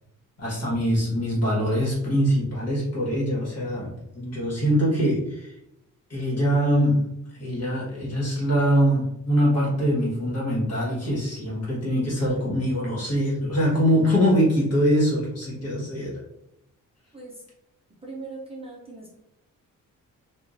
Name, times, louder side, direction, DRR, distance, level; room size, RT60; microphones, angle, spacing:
voice 1, 0.4-5.5 6.1-7.0 7.4-16.1, equal, 50° left, -5 dB, 1.4 m, -23 dB
voice 2, 17.1-17.4 18.0-19.1, right 3 dB, 20° right, -4 dB, 0.5 m, -39 dB
3.6 x 2.4 x 2.5 m, 0.81 s
wide cardioid pair, 160°, 33 cm